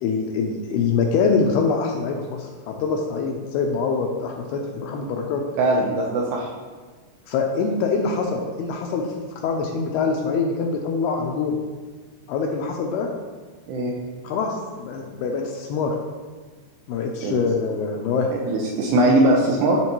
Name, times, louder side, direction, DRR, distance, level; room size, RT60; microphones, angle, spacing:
voice 1, 0.0-5.4 7.3-9.1 9.4-11.6 12.3-13.1 14.2-15.9 16.9-18.3, left 5 dB, 80° left, 1 dB, 2.3 m, -24 dB
voice 2, 5.6-6.5 13.7-13.9 17.2-17.4 18.3-19.8, right 1 dB, 80° right, -2 dB, 2.5 m, -20 dB
10.5 x 3.5 x 3.0 m, 1.5 s
omnidirectional pair, 5.0 m